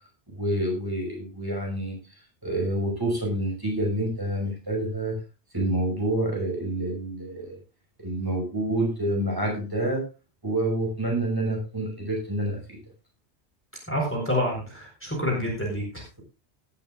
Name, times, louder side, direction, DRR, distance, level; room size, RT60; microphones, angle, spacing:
voice 1, 0.3-2.0 2.4-5.2 5.5-7.6 8.0-10.1 10.4-12.8, right 1 dB, 20° right, 0 dB, 5.8 m, -28 dB
voice 2, 13.9-16.0, equal, 10° left, -1 dB, 4.3 m, -28 dB
17.5 x 12.0 x 2.5 m, 0.30 s
omnidirectional pair, 1.2 m